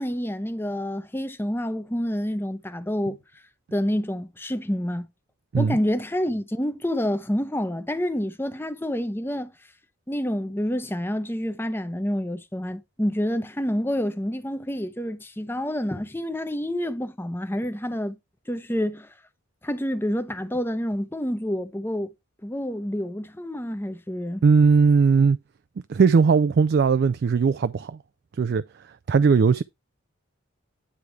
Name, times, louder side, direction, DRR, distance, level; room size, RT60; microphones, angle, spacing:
voice 1, 0.0-3.2 3.7-5.1 5.6-9.5 10.1-18.2 18.5-19.1 19.6-22.1 22.4-24.4, equal, 10° left, 0.7 m, -28 dB
voice 2, 24.4-25.4 25.9-28.0 28.3-29.6, right 5 dB, 50° right, 0.3 m, -19 dB
9.7 x 3.4 x 4.7 m
head